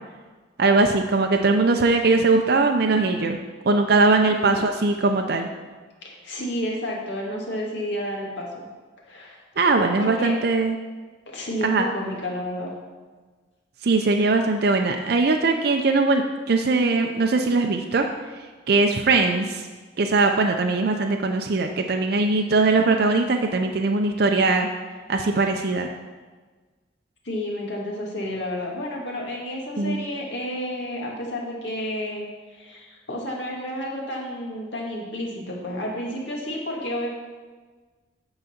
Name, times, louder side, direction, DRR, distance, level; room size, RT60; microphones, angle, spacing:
voice 1, 0.6-3.4 3.7-5.5 9.6-10.8 11.6-11.9 13.8-16.2 16.5-18.1 18.7-19.6 20.0-24.7 25.1-25.9 29.8-30.0, right 3 dB, 55° right, 3 dB, 0.5 m, -20 dB
voice 2, 4.3-4.7 6.0-8.6 9.1-9.4 10.0-10.3 11.3-12.7 27.2-32.3 32.5-37.1, left 1 dB, 70° left, -2 dB, 1.9 m, -31 dB
9.4 x 4.0 x 7.0 m, 1.4 s
head